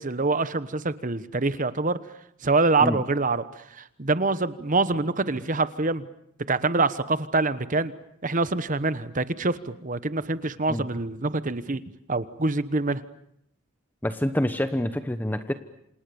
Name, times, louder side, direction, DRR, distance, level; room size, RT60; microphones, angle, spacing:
voice 1, 0.0-2.0 2.4-6.0 6.5-7.9 8.2-11.8 12.1-13.0, right 3 dB, 40° right, 14 dB, 1.1 m, -25 dB
voice 2, 14.0-15.5, left 1 dB, 10° left, 9 dB, 1.0 m, -26 dB
28.5 x 27.0 x 7.1 m, 0.76 s
head